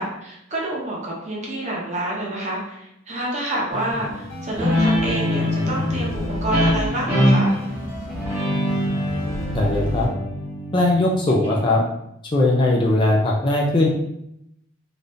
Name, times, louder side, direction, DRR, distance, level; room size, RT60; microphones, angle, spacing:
voice 1, 0.0-7.5, right 1 dB, 35° right, -3 dB, 0.7 m, -28 dB
sound 1, 3.7-10.1, equal, 70° left, 1.0 m, -32 dB
Guitar, 4.6-11.7, left 1 dB, 10° right, 0.9 m, -23 dB
voice 2, 9.5-10.1 10.7-11.8 12.3-13.9, left 2 dB, 25° left, -2 dB, 0.4 m, -19 dB
3.4 x 2.5 x 2.6 m, 0.80 s
head